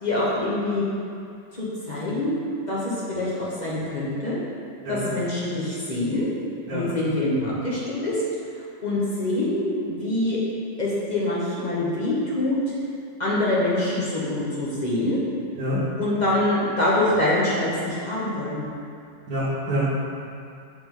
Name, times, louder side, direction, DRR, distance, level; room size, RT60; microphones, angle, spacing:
voice 1, 0.0-0.8 1.5-2.3 2.7-4.4 4.9-6.3 6.7-8.2 8.5-10.4 10.8-12.7 13.2-15.2 16.0-18.7, left 1 dB, 30° left, -7 dB, 0.9 m, -25 dB
voice 2, 19.3-19.9, equal, 70° right, -10 dB, 1.6 m, -26 dB
7.7 x 3.7 x 3.7 m, 2.5 s
omnidirectional pair, 1.8 m